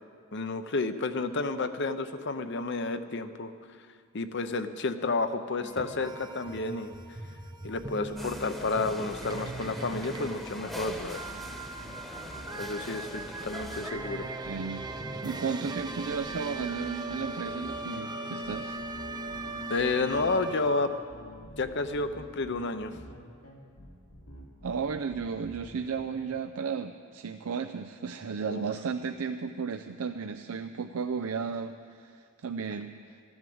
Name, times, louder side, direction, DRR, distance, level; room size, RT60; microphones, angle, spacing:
voice 1, 0.3-3.5 4.1-6.9 7.6-11.3 12.6-14.3 19.7-20.9 21.6-22.9 28.5-28.7, left 3 dB, 55° left, 10 dB, 0.7 m, -31 dB
sound 1, 5.6-21.0, right 2 dB, 20° right, 0.6 m, -39 dB
sound 2, 7.8-26.3, equal, 85° left, 2.5 m, -49 dB
sound 3, 8.2-13.9, equal, ahead, 1.1 m, -42 dB
voice 2, 14.4-14.9 15.2-18.8 24.6-33.3, right 5 dB, 85° right, 7 dB, 0.5 m, -34 dB
13.5 x 11.0 x 7.8 m, 2.2 s
head